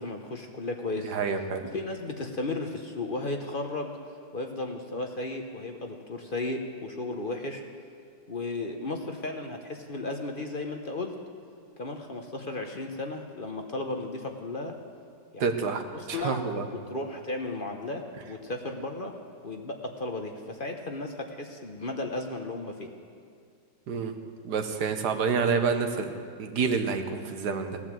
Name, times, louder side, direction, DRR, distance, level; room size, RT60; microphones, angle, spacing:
voice 1, 0.0-1.1 1.7-4.0 4.3-7.6 8.3-11.1 11.8-14.8 15.3-15.4 15.9-16.5 16.7-19.1 19.4-22.9, left 2 dB, 40° left, 3 dB, 1.0 m, -34 dB
voice 2, 1.0-1.6 15.4-15.8 16.1-16.6 23.9-24.1 24.4-26.1 26.4-27.8, right 5 dB, 85° right, 6 dB, 1.7 m, -28 dB
18.0 x 9.8 x 7.5 m, 2.2 s
omnidirectional pair, 1.7 m